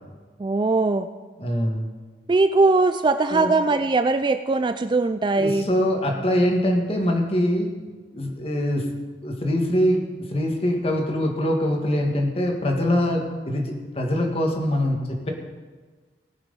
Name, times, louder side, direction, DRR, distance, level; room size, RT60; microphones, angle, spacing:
voice 1, 0.4-1.1 2.3-5.7, right 3 dB, 25° right, 10 dB, 0.3 m, -20 dB
voice 2, 1.4-1.9 3.3-3.5 5.4-7.7 8.1-8.9 9.2-10.0 10.3-15.3, equal, 35° left, 2 dB, 1.6 m, -23 dB
18.0 x 6.0 x 5.5 m, 1.4 s
head